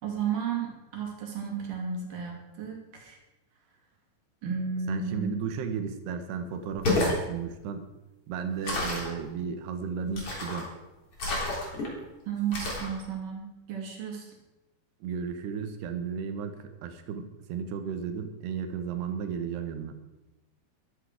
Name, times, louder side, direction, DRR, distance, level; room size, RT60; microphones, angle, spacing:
voice 1, 0.0-3.2 4.4-5.4 12.3-14.3, right 6 dB, 50° right, 0 dB, 3.8 m, -33 dB
voice 2, 4.9-7.9 8.3-10.7 15.0-20.0, right 6 dB, 75° right, 7 dB, 3.1 m, -34 dB
sound 1, 6.7-7.2 8.6-9.1 10.1-10.7 11.2-11.9 12.5-12.9, left 2 dB, 35° left, 3.8 m, -29 dB
13.5 x 12.5 x 4.9 m, 1.0 s
omnidirectional pair, 5.1 m